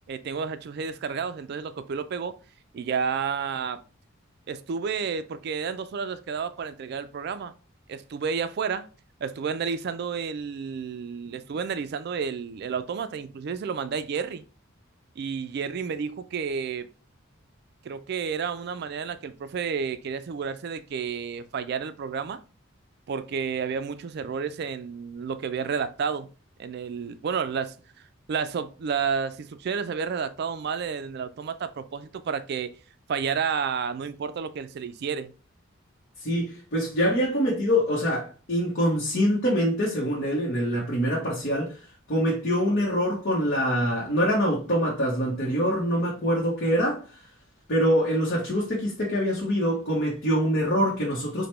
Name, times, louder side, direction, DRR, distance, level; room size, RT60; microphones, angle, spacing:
voice 1, 0.1-2.3 2.7-3.8 4.5-7.5 7.9-8.9 9.2-14.4 15.2-16.9 17.8-22.4 23.1-26.3 26.6-27.7 28.3-32.7 33.1-35.3, right 6 dB, 50° right, 0.3 m, -31 dB
voice 2, 36.2-41.8 42.1-47.2 47.7-51.5, equal, 50° left, 0.9 m, -25 dB
4.8 x 2.1 x 3.2 m
head